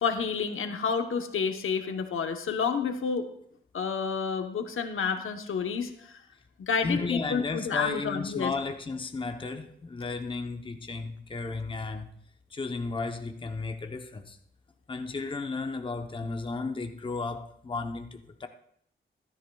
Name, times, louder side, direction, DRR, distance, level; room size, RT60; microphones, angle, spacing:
voice 1, 0.0-3.3 3.7-6.1 6.6-8.5, left 6 dB, 80° left, 0.9 m, -29 dB
voice 2, 6.8-12.1 12.5-14.4 14.9-18.5, left 3 dB, 25° left, 0.7 m, -34 dB
14.0 x 12.5 x 2.3 m
wide cardioid pair, 120°, 21 cm